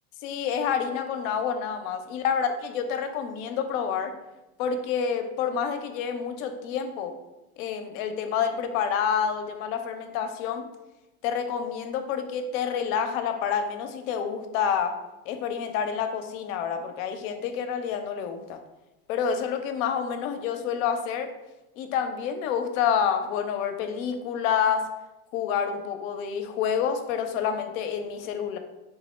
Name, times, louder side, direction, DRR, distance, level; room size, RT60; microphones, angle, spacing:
voice 1, 0.2-4.1 4.6-7.1 7.6-10.6 11.2-14.9 15.3-18.6 19.1-21.3 21.8-24.8 25.3-28.6, left 7 dB, 65° left, 6 dB, 0.6 m, -28 dB
3.5 x 2.0 x 4.3 m, 0.99 s
hypercardioid pair, 85°, 44 cm